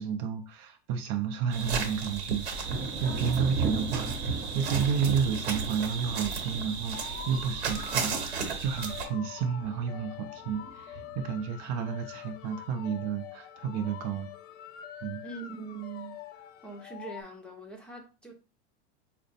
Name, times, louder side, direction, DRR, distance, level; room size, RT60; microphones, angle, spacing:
voice 1, 0.0-14.3 15.0-15.2, right 7 dB, 50° right, 0.6 m, -31 dB
sound 1, 1.5-9.1, right 5 dB, 90° right, 1.0 m, -35 dB
Thunder, 2.6-9.1 9.4-10.0 10.5-11.3, right 4 dB, 30° right, 0.9 m, -36 dB
sound 2, 6.9-17.2, left 11 dB, 30° left, 0.4 m, -45 dB
voice 2, 15.2-18.3, right 4 dB, 5° left, 0.9 m, -43 dB
4.9 x 2.1 x 2.6 m
supercardioid pair, 120°, 33 cm